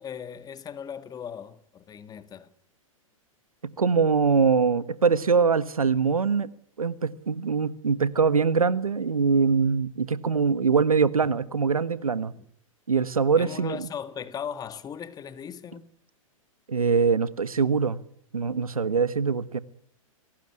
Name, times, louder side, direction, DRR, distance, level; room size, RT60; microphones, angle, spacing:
voice 1, 0.0-2.5 11.2-11.3 12.4-12.5 13.4-15.9, left 8 dB, 20° left, 1.8 m, -38 dB
voice 2, 3.6-6.5 6.8-12.3 12.9-13.9 16.7-18.0 18.3-19.6, right 5 dB, 90° right, 1.4 m, -23 dB
24.5 x 18.5 x 9.8 m
hypercardioid pair, 110°, 18 cm